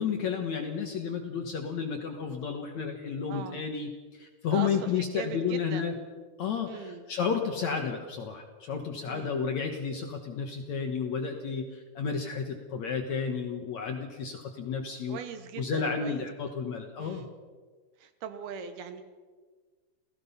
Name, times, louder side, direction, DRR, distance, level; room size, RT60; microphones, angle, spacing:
voice 1, 0.0-5.9 6.4-15.2 15.6-17.3, left 6 dB, 60° left, 4 dB, 2.1 m, -32 dB
voice 2, 3.3-3.6 4.5-5.9 6.7-7.0 9.1-9.4 15.1-16.3 17.0-17.3 18.0-19.0, right 7 dB, 70° right, 9 dB, 3.0 m, -40 dB
28.5 x 17.5 x 5.7 m, 1.4 s
omnidirectional pair, 4.9 m